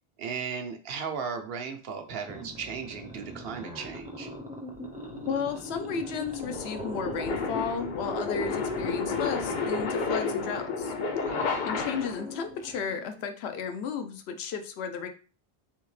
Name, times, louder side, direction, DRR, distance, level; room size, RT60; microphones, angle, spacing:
voice 1, 0.2-4.3 11.3-11.6, right 6 dB, 70° right, 6 dB, 0.8 m, -36 dB
sound 1, 2.1-13.2, equal, 10° right, 0.4 m, -40 dB
sound 2, 4.8-12.4, left 5 dB, 55° left, 0.6 m, -32 dB
voice 2, 5.3-10.9 11.7-15.1, left 6 dB, 90° left, 7 dB, 0.8 m, -34 dB
3.4 x 2.8 x 3.1 m, 0.38 s
omnidirectional pair, 1.0 m